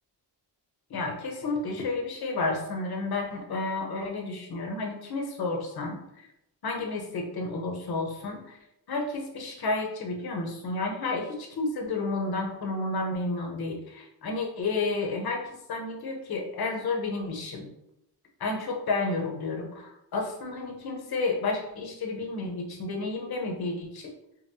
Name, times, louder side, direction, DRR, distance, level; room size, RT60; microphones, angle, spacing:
voice 1, 0.9-6.3 6.6-8.6 8.9-17.7 18.4-24.1, left 3 dB, 60° left, 1 dB, 0.9 m, -31 dB
5.4 x 2.2 x 2.7 m, 0.84 s
wide cardioid pair, 120°, 43 cm